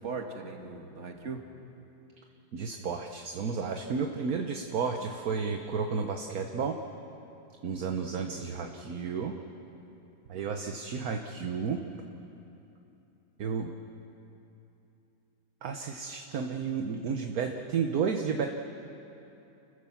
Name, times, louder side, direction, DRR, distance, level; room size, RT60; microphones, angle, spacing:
voice 1, 0.0-1.5 8.0-8.7, right 4 dB, 40° right, 3 dB, 1.9 m, -40 dB
voice 2, 2.5-6.8 7.6-9.3 10.3-11.8 13.4-13.7 15.6-18.5, right 5 dB, 55° right, 4 dB, 1.3 m, -32 dB
29.5 x 15.0 x 7.2 m, 2.9 s
omnidirectional pair, 2.1 m